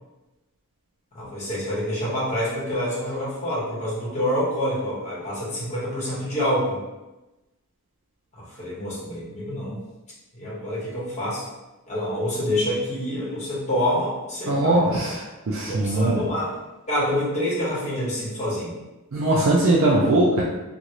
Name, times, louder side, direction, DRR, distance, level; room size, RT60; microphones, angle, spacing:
voice 1, 1.1-6.8 8.3-9.8 10.3-11.4 11.9-15.1 15.7-16.5 16.9-18.8, left 1 dB, 30° left, -6 dB, 1.1 m, -27 dB
voice 2, 14.5-16.2 19.1-20.4, right 1 dB, 60° right, -4 dB, 0.4 m, -20 dB
3.0 x 2.5 x 2.9 m, 1.0 s
head